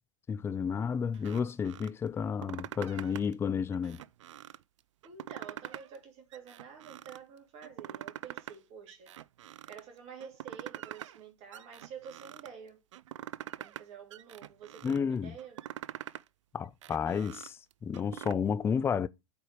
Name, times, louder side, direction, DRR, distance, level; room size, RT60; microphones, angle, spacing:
voice 1, 0.3-4.0 14.8-15.3 16.5-19.1, left 6 dB, 15° left, 0.4 m, -31 dB
sound 1, 1.1-1.9 2.3-3.3 3.7-4.6 5.0-6.0 6.3-7.2 7.6-8.6 8.9-9.8 10.2-11.2 11.5-12.5 12.9-13.8 14.1-15.0 15.4-16.3 16.6-18.3, right 12 dB, 70° right, 0.5 m, -44 dB
voice 2, 5.0-9.1 9.7-12.8 13.6-15.6, right 7 dB, 40° right, 3.1 m, -49 dB
8.5 x 4.7 x 6.7 m
hypercardioid pair, 105°, 17 cm